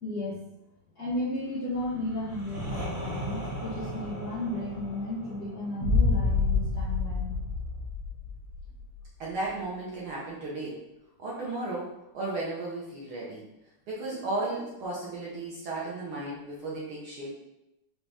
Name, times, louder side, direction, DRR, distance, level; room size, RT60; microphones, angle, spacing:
voice 1, 0.0-0.4 0.9-7.3, left 1 dB, 85° left, -8 dB, 0.8 m, -34 dB
sound 1, 1.7-7.5, right 1 dB, 45° right, 2.2 m, -39 dB
sound 2, 5.8-8.8, left 4 dB, 85° right, 2.1 m, -27 dB
voice 2, 9.2-10.8 11.2-13.4 13.9-17.3, right 2 dB, 70° right, -5 dB, 1.3 m, -34 dB
5.0 x 2.8 x 3.5 m, 0.89 s
omnidirectional pair, 3.4 m